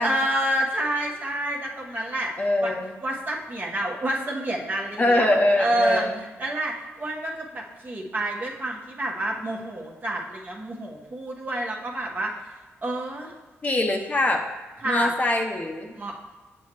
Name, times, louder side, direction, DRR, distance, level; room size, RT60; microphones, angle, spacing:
voice 1, 0.0-2.3 2.6-2.7 3.0-5.3 5.6-13.3 14.8-15.1 15.9-16.1, right 1 dB, 40° right, -1 dB, 1.3 m, -28 dB
voice 2, 2.4-2.9 5.0-6.2 13.6-14.5 14.8-16.0, left 1 dB, 30° left, 2 dB, 0.7 m, -23 dB
7.4 x 6.2 x 3.0 m, 1.3 s
cardioid pair, 80°, 5 cm